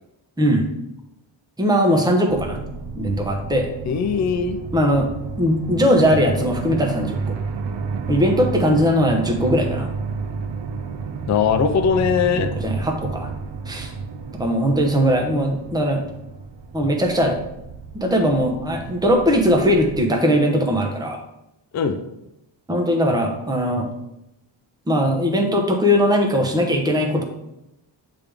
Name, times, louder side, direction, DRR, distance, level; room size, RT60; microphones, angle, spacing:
voice 1, 1.6-2.6 2.9-3.7 4.7-5.1 5.4-7.3 8.1-9.9 12.3-13.3 13.7-13.9 14.4-16.0 16.7-17.4 17.9-21.2 22.7-23.9 24.9-27.2, equal, 10° right, 2 dB, 0.8 m, -19 dB
sound 1, 2.3-20.0, right 5 dB, 65° right, 0.6 m, -31 dB
voice 2, 3.9-4.6 11.3-12.5 21.7-22.0, left 6 dB, 40° left, 6 dB, 0.5 m, -20 dB
8.5 x 3.5 x 3.5 m, 0.88 s
wide cardioid pair, 130°, 46 cm